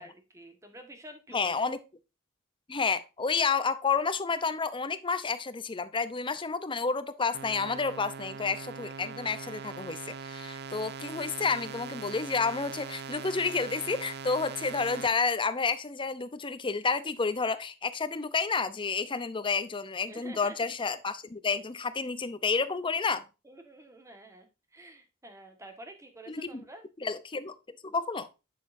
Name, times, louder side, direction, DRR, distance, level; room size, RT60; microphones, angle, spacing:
voice 1, 0.0-1.5 20.0-20.7 22.6-22.7 23.4-26.8, right 1 dB, 15° right, 1.5 m, -49 dB
voice 2, 1.3-1.8 2.7-23.2 26.3-26.6 27.0-27.5 27.8-28.3, left 4 dB, 25° left, 0.6 m, -30 dB
sound 1, 7.3-15.1, right 6 dB, 55° right, 0.5 m, -41 dB
8.4 x 6.6 x 2.6 m
head